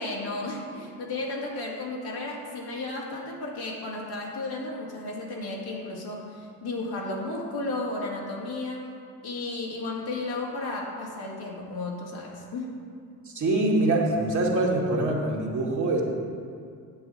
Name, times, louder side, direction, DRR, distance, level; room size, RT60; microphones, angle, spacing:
voice 1, 0.0-8.9 9.2-12.8, left 2 dB, 55° left, -3 dB, 2.4 m, -33 dB
voice 2, 13.3-16.0, right 2 dB, 40° right, -3 dB, 2.4 m, -24 dB
10.0 x 8.0 x 4.2 m, 2.4 s
hypercardioid pair, 55°, 45 cm